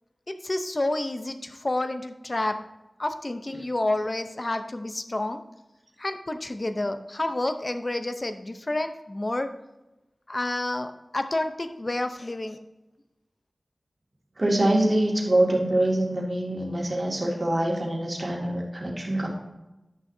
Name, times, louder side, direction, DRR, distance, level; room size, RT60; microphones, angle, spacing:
voice 1, 0.3-2.6 3.0-5.4 6.0-9.5 10.3-12.6, left 2 dB, 40° left, 8 dB, 0.7 m, -29 dB
voice 2, 14.4-19.3, right 1 dB, 45° right, -1 dB, 2.2 m, -24 dB
10.5 x 6.3 x 2.7 m, 0.98 s
wide cardioid pair, 55°, 0 cm